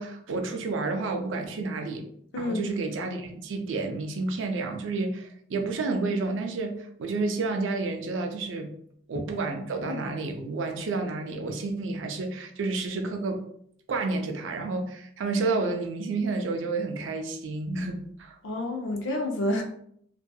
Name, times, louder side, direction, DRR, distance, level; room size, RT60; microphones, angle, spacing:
voice 1, 0.0-2.0 2.4-8.7 9.1-13.4 13.9-18.4, right 3 dB, 80° right, 5 dB, 0.4 m, -30 dB
voice 2, 2.3-2.7 9.8-10.0 18.4-19.6, left 1 dB, 75° left, 2 dB, 0.5 m, -29 dB
2.6 x 2.3 x 2.3 m, 0.67 s
head